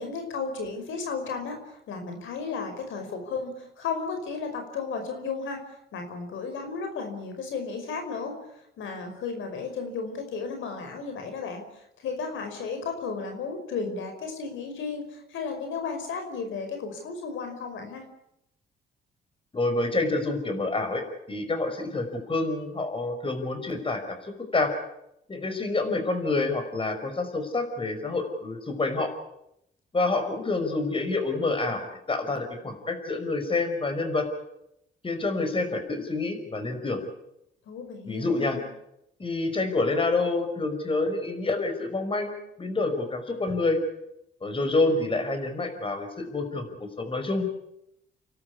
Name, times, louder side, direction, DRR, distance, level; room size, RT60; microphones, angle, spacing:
voice 1, 0.0-5.6 5.9-8.3 8.8-18.0 37.7-38.6, left 5 dB, 80° left, 5 dB, 5.4 m, -34 dB
voice 2, 19.5-24.7 25.3-29.1 29.9-34.3 35.0-37.0 38.1-38.6 39.2-43.8 44.4-46.7 47.0-47.4, left 3 dB, 25° left, 6 dB, 5.5 m, -28 dB
30.0 x 12.5 x 9.8 m, 0.81 s
cardioid pair, 90°, 20 cm